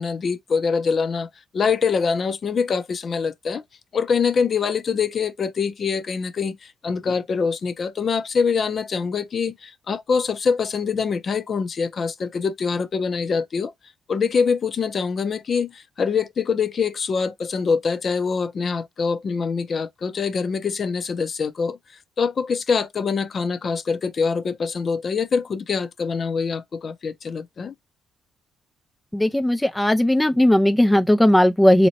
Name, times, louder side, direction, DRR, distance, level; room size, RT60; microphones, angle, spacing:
voice 1, 0.0-3.6 3.9-13.7 14.1-21.8 22.2-27.7, left 5 dB, 45° left, 0.7 m, -24 dB
voice 2, 29.1-31.9, left 1 dB, 10° left, 0.4 m, -17 dB
4.2 x 2.9 x 2.8 m
cardioid pair, 90°, 0 cm